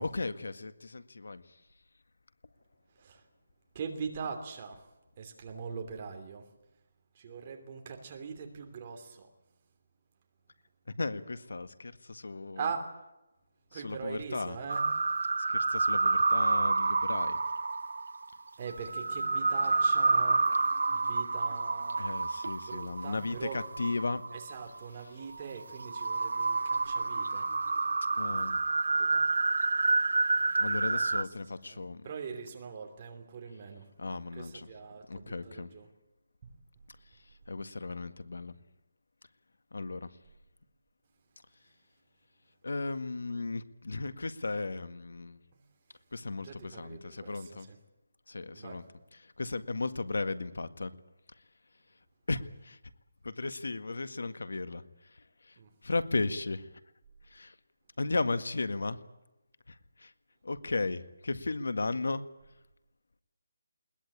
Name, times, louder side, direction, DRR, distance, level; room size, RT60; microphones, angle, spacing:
voice 1, 0.0-1.4 11.0-12.6 13.7-14.6 15.5-17.4 22.0-24.2 28.2-28.6 30.6-32.0 34.0-34.7 35.1-35.7 37.5-38.5 39.7-40.1 42.6-45.4 46.1-47.7 48.3-48.8 49.2-50.9 52.3-52.8 53.2-54.8 55.5-55.6 55.8-56.7 57.3-57.5 58.0-59.0 59.7-60.1 60.4-62.3, left 3 dB, 80° left, 12 dB, 1.8 m, -35 dB
voice 2, 2.9-3.3 3.7-4.8 5.2-6.4 7.1-9.3 12.6-12.9 13.7-14.9 18.6-20.4 20.9-22.0 22.5-23.6 24.3-27.5 28.2-28.4 29.0-29.3 29.8-30.1 30.9-31.3 31.6-33.9 34.3-35.9 36.4-36.5 45.5-45.6 46.3-47.8 48.5-48.8 55.6-55.7, right 5 dB, 25° right, 4 dB, 3.0 m, -42 dB
sound 1, 14.7-24.8 25.3-31.2, right 3 dB, 65° right, 0.8 m, -29 dB
21.0 x 20.0 x 8.6 m, 0.97 s
hypercardioid pair, 175°, 0 cm